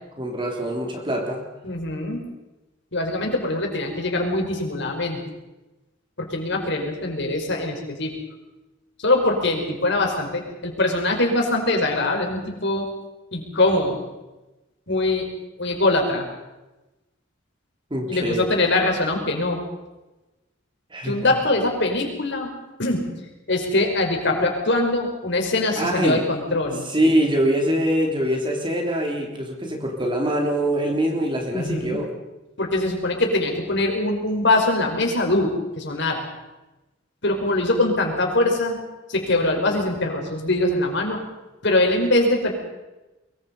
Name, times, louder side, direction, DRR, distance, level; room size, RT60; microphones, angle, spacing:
voice 1, 0.2-1.4 17.9-18.5 20.9-21.3 25.8-26.3 26.8-32.1, right 1 dB, 25° right, 2 dB, 3.4 m, -23 dB
voice 2, 1.6-2.2 2.9-5.2 6.2-8.1 9.0-12.9 13.3-14.0 14.9-15.3 15.6-16.3 18.1-19.6 21.0-22.5 22.8-23.0 23.5-26.8 31.5-32.0 32.6-36.3 37.2-38.8 39.1-41.2 41.6-42.5, left 2 dB, 65° left, 2 dB, 5.3 m, -22 dB
23.5 x 23.0 x 5.5 m, 1.0 s
head